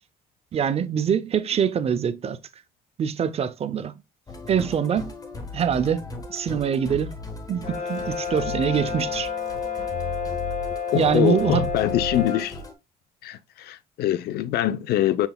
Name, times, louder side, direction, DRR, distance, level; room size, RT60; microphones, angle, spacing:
voice 1, 0.5-2.4 3.0-3.9 4.5-5.1 5.5-6.0 6.3-7.2 7.5-9.3 10.9-11.7, right 7 dB, 35° right, 0.5 m, -24 dB
Musical instrument, 4.3-12.7, left 2 dB, 20° left, 1.1 m, -37 dB
Brass instrument, 7.6-12.5, left 6 dB, 50° left, 1.6 m, -30 dB
voice 2, 10.9-12.6 13.2-15.3, left 12 dB, 70° left, 0.5 m, -24 dB
5.8 x 3.9 x 2.2 m
cardioid pair, 110°, 17 cm